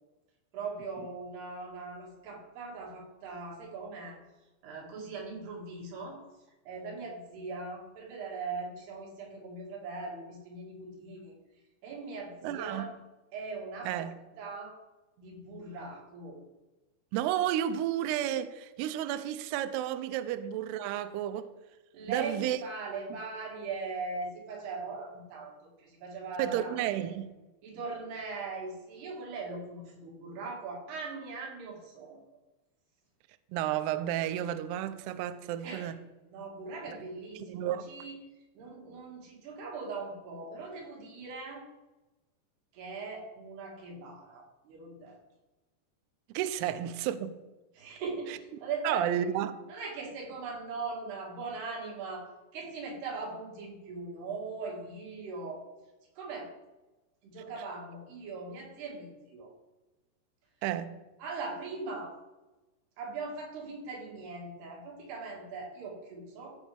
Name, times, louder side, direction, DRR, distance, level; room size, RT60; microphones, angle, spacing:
voice 1, 0.5-4.2 4.6-6.2 6.7-11.3 11.8-12.9 13.3-14.1 14.4-14.8 15.2-16.4 21.9-25.5 25.8-27.1 27.6-32.4 35.6-35.9 36.3-38.2 38.6-41.7 42.7-45.2 47.8-49.3 49.7-55.6 56.2-56.5 57.2-59.5 61.2-62.1 63.0-66.5, right 4 dB, 65° right, -2 dB, 3.8 m, -40 dB
voice 2, 12.4-12.9 13.8-14.1 17.1-21.5 22.1-22.6 26.4-27.3 33.5-35.9 36.9-37.0 37.5-37.9 46.3-47.3 48.3-48.4 48.8-49.5 60.6-60.9, right 11 dB, 85° right, 11 dB, 2.3 m, -32 dB
14.5 x 6.3 x 3.4 m, 1.1 s
omnidirectional pair, 5.2 m